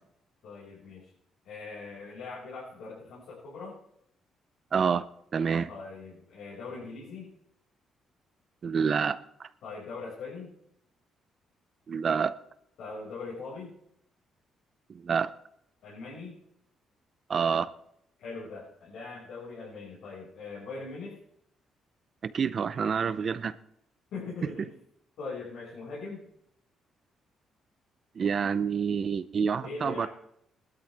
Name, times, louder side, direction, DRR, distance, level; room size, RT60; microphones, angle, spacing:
voice 1, 0.4-1.0 1.4-3.8 5.7-7.3 9.6-10.5 12.8-13.7 15.8-16.3 18.2-21.2 24.1-24.7 25.2-26.2 29.6-30.1, left 4 dB, 80° left, 5.7 m, -41 dB
voice 2, 4.7-5.1 5.3-5.7 8.6-9.5 11.9-12.4 14.9-15.3 17.3-17.7 22.2-23.6 24.6-24.7 28.2-30.1, right 6 dB, 50° right, 0.6 m, -28 dB
19.0 x 12.5 x 3.5 m
cardioid pair, 90°, 0 cm